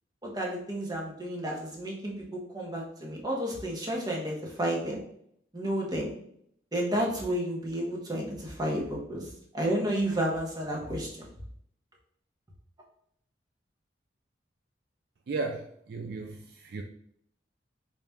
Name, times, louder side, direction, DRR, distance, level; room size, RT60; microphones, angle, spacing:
voice 1, 0.2-5.0 5.5-6.1 6.7-9.3 9.5-11.1, right 1 dB, 20° right, -2 dB, 0.9 m, -31 dB
voice 2, 15.3-15.6 15.9-16.4 16.7-16.8, right 3 dB, 60° right, 3 dB, 0.3 m, -33 dB
4.0 x 2.3 x 3.4 m, 0.68 s
head